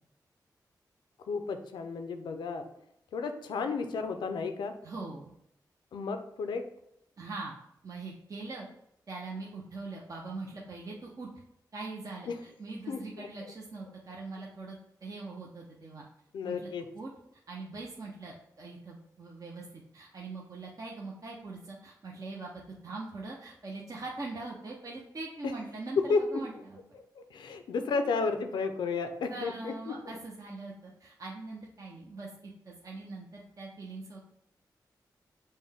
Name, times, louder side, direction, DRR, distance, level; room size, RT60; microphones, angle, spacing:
voice 1, 1.3-2.7 3.1-4.7 5.9-6.6 12.3-12.4 12.9-13.5 16.3-16.9 25.4-25.5 26.0-26.4 26.9-30.0, left 4 dB, 90° left, 7 dB, 0.4 m, -32 dB
voice 2, 4.8-5.3 7.2-7.5 7.8-8.7 9.1-11.3 11.7-16.0 16.5-17.1 17.5-22.5 22.8-26.8 29.3-34.2, right 3 dB, 50° right, -2 dB, 0.7 m, -42 dB
5.3 x 2.1 x 3.4 m, 0.76 s
cardioid pair, 50°, 8 cm